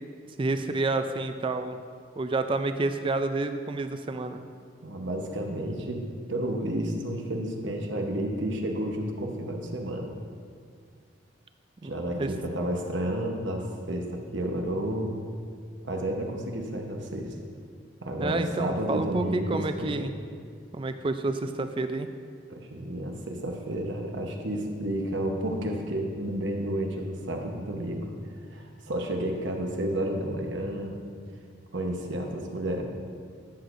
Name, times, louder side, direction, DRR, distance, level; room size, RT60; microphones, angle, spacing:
voice 1, 0.4-1.8 2.2-4.4 11.8-11.9 12.2-12.3 18.2-20.1 20.7-22.1, right 2 dB, 25° right, 9 dB, 0.4 m, -29 dB
voice 2, 4.8-10.1 11.8-15.1 15.8-17.3 18.0-20.1 22.5-28.1 28.5-31.0 31.7-32.8, right 1 dB, 70° right, 2 dB, 1.0 m, -31 dB
12.5 x 8.0 x 2.6 m, 2.1 s
head